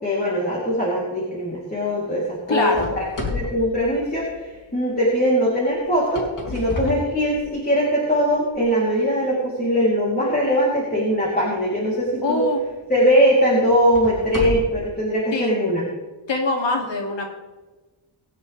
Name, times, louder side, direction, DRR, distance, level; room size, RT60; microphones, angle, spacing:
voice 1, 0.0-2.7 3.0-12.4 12.9-15.8, equal, 20° left, -6 dB, 3.5 m, -21 dB
voice 2, 2.5-2.9 12.2-12.6 15.3-15.5 16.3-17.3, left 3 dB, 70° left, 1 dB, 2.9 m, -23 dB
sound 1, 2.7-4.7 5.9-7.8 8.5-8.6 9.3-9.4 12.0-12.2 12.7-12.8 13.7-14.9, left 3 dB, 45° left, 2.8 m, -31 dB
23.5 x 8.5 x 3.5 m, 1.2 s
wide cardioid pair, 115°, 46 cm